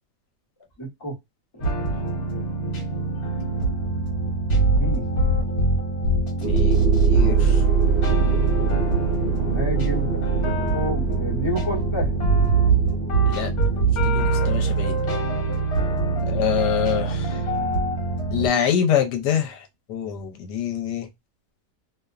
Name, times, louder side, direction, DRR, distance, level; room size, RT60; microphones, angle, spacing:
voice 1, 0.8-1.2 1.5-1.6 4.8-5.1 9.3-12.1 16.1-16.7, equal, 20° left, 0.8 m, -31 dB
sound 1, 1.6-18.5, right 3 dB, 60° left, 1.3 m, -23 dB
voice 2, 6.4-6.8 7.1-7.6 13.3-13.5 14.0-15.0 16.3-17.3 18.3-19.6 19.9-21.1, left 9 dB, 80° left, 1.2 m, -25 dB
sound 2, 6.4-16.2, right 4 dB, 50° right, 0.8 m, -26 dB
2.9 x 2.1 x 2.3 m
omnidirectional pair, 1.9 m